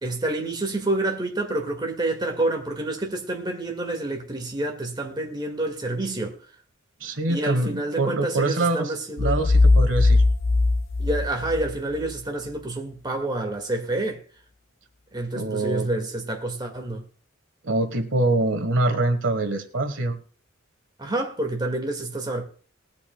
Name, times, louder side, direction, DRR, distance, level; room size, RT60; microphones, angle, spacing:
voice 1, 0.0-6.4 7.3-9.4 11.0-14.2 15.1-17.0 21.0-22.4, right 2 dB, 20° right, 1.9 m, -28 dB
voice 2, 7.0-10.2 15.3-15.9 17.6-20.2, right 2 dB, 75° right, 1.5 m, -24 dB
sound 1, 9.2-12.0, left 3 dB, 65° left, 0.5 m, -19 dB
20.5 x 8.4 x 2.3 m
head